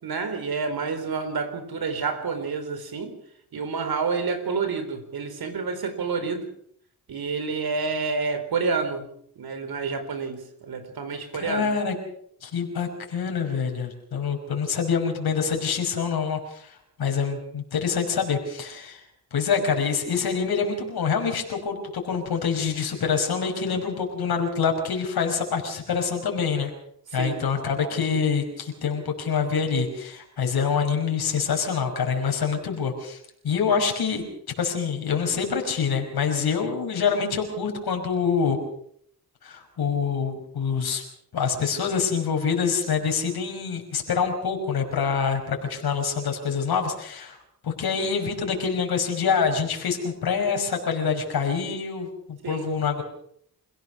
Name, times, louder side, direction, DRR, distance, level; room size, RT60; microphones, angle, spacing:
voice 1, 0.0-3.1 3.5-6.5 7.1-9.1 9.4-11.7 27.1-27.4 52.4-52.7, right 4 dB, 75° right, 8 dB, 4.4 m, -29 dB
voice 2, 11.3-11.9 12.4-19.0 19.3-26.7 27.1-34.2 34.6-38.6 39.4-41.0 41.3-47.4 47.6-53.0, left 6 dB, 80° left, 3 dB, 5.6 m, -26 dB
27.5 x 17.0 x 6.3 m, 0.67 s
cardioid pair, 80°, 37 cm